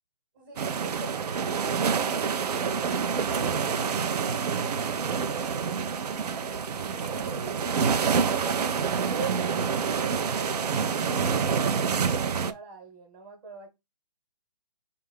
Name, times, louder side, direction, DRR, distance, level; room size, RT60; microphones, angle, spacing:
voice 1, 0.3-3.2 3.8-6.3 6.6-13.7, right 4 dB, 25° right, 1.1 m, -43 dB
sound 1, 0.6-12.5, right 6 dB, 75° right, 0.6 m, -27 dB
5.6 x 2.4 x 3.4 m
hypercardioid pair, 160°, 20 cm